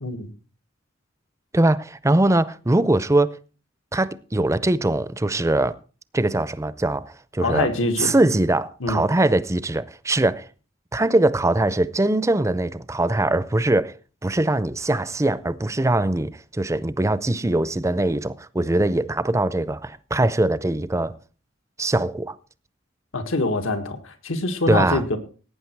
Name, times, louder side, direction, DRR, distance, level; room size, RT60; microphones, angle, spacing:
voice 1, 1.5-3.4 3.9-5.8 6.1-7.7 8.0-10.5 10.9-13.9 14.2-21.2 21.8-22.4 24.7-25.0, right 2 dB, 15° right, 0.5 m, -22 dB
voice 2, 7.4-8.1 8.8-9.0 23.1-25.2, left 2 dB, 85° left, 1.8 m, -24 dB
17.5 x 9.1 x 4.6 m
head